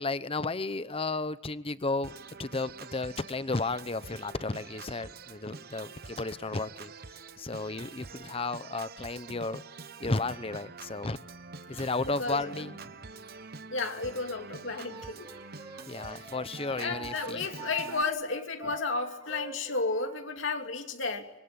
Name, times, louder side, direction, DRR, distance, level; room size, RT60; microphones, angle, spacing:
voice 1, 0.0-2.1 2.4-6.9 7.4-9.6 10.0-11.2 11.7-13.0 15.9-17.5, left 3 dB, 30° left, 14 dB, 0.9 m, -33 dB
Organ, 2.0-18.0, right 4 dB, 50° right, 1.0 m, -46 dB
voice 2, 11.7-12.7 13.7-15.3 16.1-16.3 16.8-21.3, left 3 dB, 75° left, 4 dB, 2.8 m, -33 dB
Wind instrument woodwind instrument, 14.9-20.3, right 4 dB, 15° right, 1.0 m, -46 dB
26.0 x 22.5 x 8.9 m, 1.1 s
head